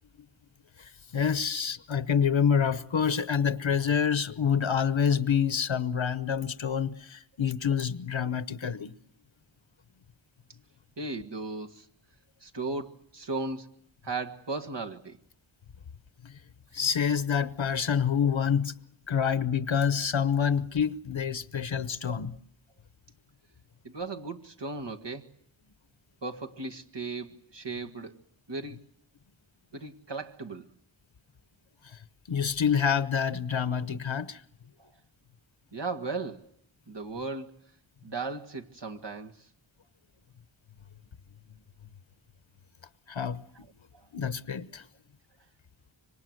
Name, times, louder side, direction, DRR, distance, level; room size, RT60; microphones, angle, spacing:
voice 1, 0.8-8.9 16.2-16.4 16.7-18.8 19.1-22.3 31.9-32.0 32.3-34.4 43.1-43.4 44.1-44.8, left 7 dB, 75° left, 1.0 m, -27 dB
voice 2, 11.0-11.9 12.4-13.7 14.0-15.2 23.8-25.3 26.2-28.2 28.5-28.8 29.7-30.7 34.8-34.9 35.7-36.5 36.9-37.6 38.0-39.5 43.9-44.1, right 3 dB, 60° right, 1.8 m, -36 dB
26.0 x 24.5 x 7.9 m
wide cardioid pair, 65°, 47 cm